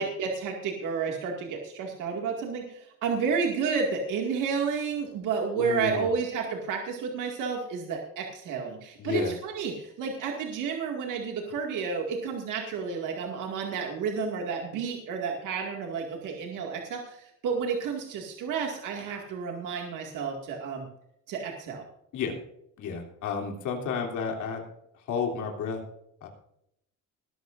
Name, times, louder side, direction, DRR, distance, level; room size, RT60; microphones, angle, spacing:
voice 1, 0.0-20.9 21.3-21.8, right 5 dB, 80° right, 1 dB, 2.2 m, -31 dB
voice 2, 5.5-6.1 9.0-9.3 22.1-22.3 22.8-24.6 24.9-25.8 26.2-26.3, left 6 dB, 70° left, 1 dB, 3.2 m, -31 dB
20.5 x 12.0 x 2.6 m, 0.78 s
cardioid pair, 165°, 31 cm